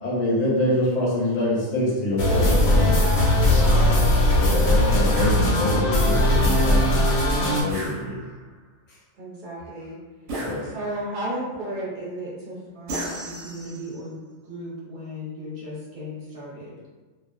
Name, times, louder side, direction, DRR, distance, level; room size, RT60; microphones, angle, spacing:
voice 1, 0.0-3.1 4.3-8.2 8.9-9.0 10.3-10.7, left 1 dB, 40° left, -6 dB, 0.7 m, -26 dB
sound 1, 2.2-7.6, left 1 dB, 85° left, 1.0 m, -19 dB
voice 2, 3.3-4.2 9.2-10.0 10.6-14.1 14.4-16.7, equal, 45° right, -7 dB, 0.8 m, -34 dB
sound 2, 5.1-5.4 7.7-8.5 10.3-11.1 12.9-14.0, right 1 dB, 90° right, 1.0 m, -34 dB
2.4 x 2.2 x 2.4 m, 1.3 s
omnidirectional pair, 1.4 m